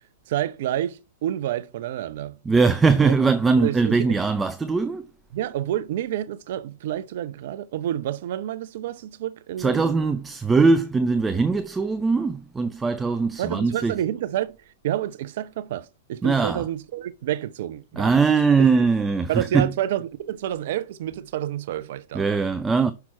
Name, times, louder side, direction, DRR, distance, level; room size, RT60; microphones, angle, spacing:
voice 1, 0.3-2.4 3.0-3.1 3.6-4.2 5.3-10.0 13.4-14.6 14.8-18.1 18.6-18.7 19.3-22.2, right 12 dB, 55° right, 0.6 m, -29 dB
voice 2, 2.5-5.0 9.6-13.9 16.2-16.7 18.0-19.7 22.1-22.9, right 4 dB, 10° right, 0.5 m, -21 dB
5.9 x 5.9 x 4.3 m
figure-of-eight pair, 105°, 0 cm